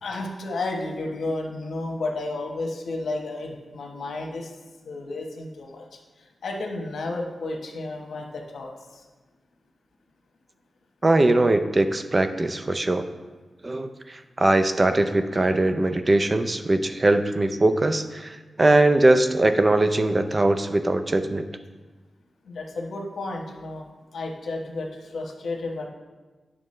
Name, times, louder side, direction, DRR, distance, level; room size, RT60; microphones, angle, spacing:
voice 1, 0.0-4.5 4.8-6.0 6.4-9.0 22.4-23.8 24.1-25.9, left 2 dB, 85° left, 1 dB, 1.1 m, -32 dB
voice 2, 11.0-13.0 13.6-21.5, right 2 dB, 30° right, 8 dB, 0.5 m, -21 dB
9.1 x 6.2 x 3.2 m, 1.3 s
wide cardioid pair, 85°, 0 cm